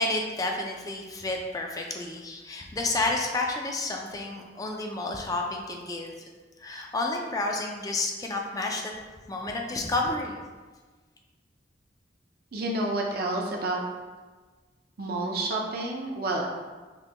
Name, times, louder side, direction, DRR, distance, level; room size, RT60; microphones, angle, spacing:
voice 1, 0.0-6.1 6.6-8.9 9.3-10.4, left 2 dB, 20° left, 1 dB, 0.3 m, -30 dB
voice 2, 12.5-13.8 15.0-16.7, right 2 dB, 55° right, 0 dB, 0.6 m, -29 dB
5.3 x 2.2 x 2.9 m, 1.3 s
head